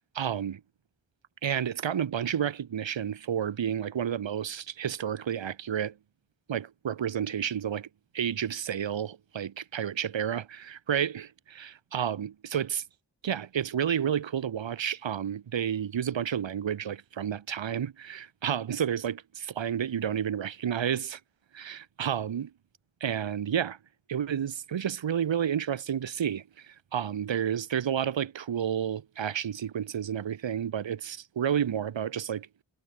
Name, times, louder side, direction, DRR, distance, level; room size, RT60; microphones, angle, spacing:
voice 1, 0.1-0.6 1.4-5.9 6.5-7.9 8.1-12.8 13.2-21.2 21.5-22.5 23.0-23.8 24.1-32.5, right 9 dB, 85° right, 1.0 m, -31 dB
cardioid pair, 40°, 44 cm